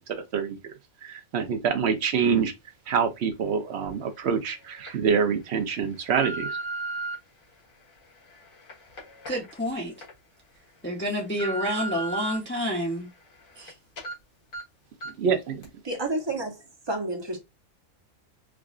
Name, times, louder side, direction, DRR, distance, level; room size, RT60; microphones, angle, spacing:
voice 1, 0.1-0.6 1.0-2.5 2.9-6.6 15.1-15.7, right 6 dB, 60° right, 0.8 m, -26 dB
sound 1, 3.9-4.0 4.6-4.9 5.5-7.1 7.8-10.1 10.5-10.6 11.1-12.4 12.8-13.7 14.0-14.1 14.5-14.6 15.0-15.3 15.6-15.7, right 2 dB, 75° left, 1.7 m, -36 dB
voice 2, 9.3-9.9 10.8-13.1 13.6-13.7, equal, 10° left, 0.6 m, -29 dB
voice 3, 15.8-17.4, right 2 dB, 25° right, 0.7 m, -30 dB
4.8 x 2.4 x 2.4 m
omnidirectional pair, 1.4 m